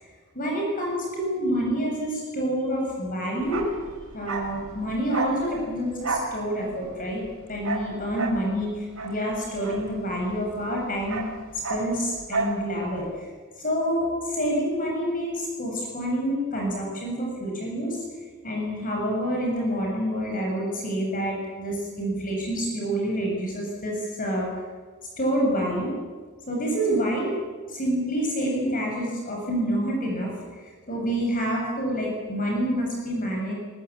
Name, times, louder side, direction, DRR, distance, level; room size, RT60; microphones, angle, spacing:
voice 1, 0.3-3.6 4.1-7.2 7.5-11.2 11.7-13.0 13.6-18.0 18.4-24.5 25.2-25.9 26.5-27.4 27.7-33.5, equal, 40° left, -1 dB, 7.2 m, -27 dB
Bark, 3.4-10.4 10.7-12.6 12.9-13.0, right 3 dB, 70° right, 5.2 m, -32 dB
24.0 x 21.0 x 8.7 m, 1.5 s
head